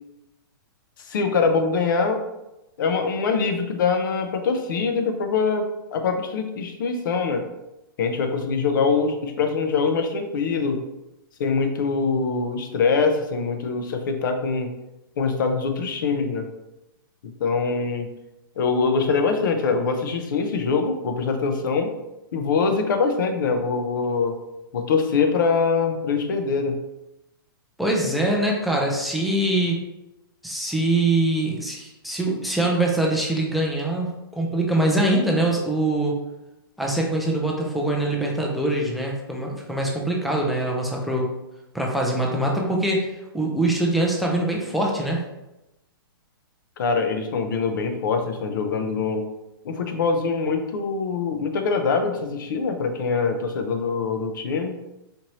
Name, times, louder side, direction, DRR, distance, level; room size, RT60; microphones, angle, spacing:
voice 1, 1.1-2.2 2.8-5.7 5.9-7.4 8.0-10.8 11.4-14.7 15.2-16.5 17.4-18.1 18.6-21.9 22.3-24.4 24.7-26.8 46.8-49.3 49.6-54.7, left 4 dB, 60° left, 6 dB, 0.6 m, -23 dB
voice 2, 27.8-29.8 30.4-36.2 36.8-41.3 41.7-45.2, right 1 dB, ahead, -1 dB, 0.3 m, -23 dB
4.4 x 2.6 x 3.0 m, 0.95 s
hypercardioid pair, 165°, 12 cm